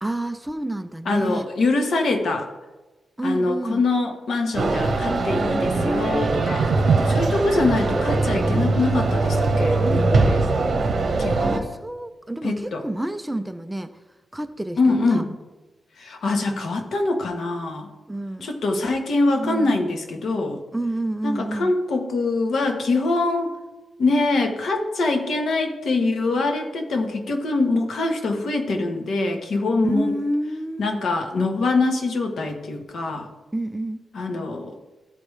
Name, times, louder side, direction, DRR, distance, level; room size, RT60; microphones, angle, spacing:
voice 1, 0.0-1.5 3.2-3.8 11.4-13.9 14.3-15.2 18.1-18.5 19.3-19.8 20.7-21.7 29.8-30.9 33.5-34.0, right 1 dB, 5° right, 9 dB, 0.4 m, -28 dB
voice 2, 1.0-2.5 3.2-6.7 7.1-10.4 11.2-11.6 12.4-12.8 14.8-15.3 16.0-17.9 18.4-20.6 21.2-23.5 24.0-30.1 30.8-33.3 34.1-34.7, left 3 dB, 65° left, 4 dB, 1.1 m, -24 dB
sound 1, 4.5-11.6, right 3 dB, 50° right, 1.1 m, -21 dB
Bass effect, 5.7-11.8, right 6 dB, 85° right, 0.3 m, -30 dB
14.5 x 4.9 x 3.2 m, 1.1 s
wide cardioid pair, 135°, 0 cm